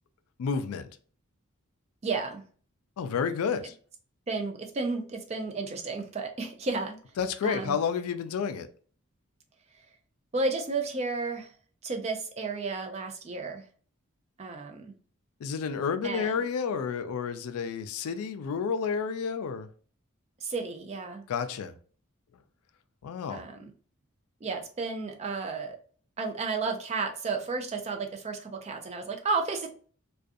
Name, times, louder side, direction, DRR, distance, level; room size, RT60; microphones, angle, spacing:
voice 1, 0.4-0.9 3.0-3.7 7.2-8.7 15.4-19.7 21.3-21.7 23.0-23.4, left 6 dB, 80° left, 0.3 m, -30 dB
voice 2, 2.0-2.4 4.3-7.0 7.4-7.8 9.7-9.8 10.3-11.5 11.8-13.6 14.4-14.9 16.0-16.4 20.4-21.3 23.3-23.7 24.4-25.8 26.2-29.7, right 3 dB, 30° right, 0.3 m, -32 dB
2.4 x 2.3 x 2.5 m
head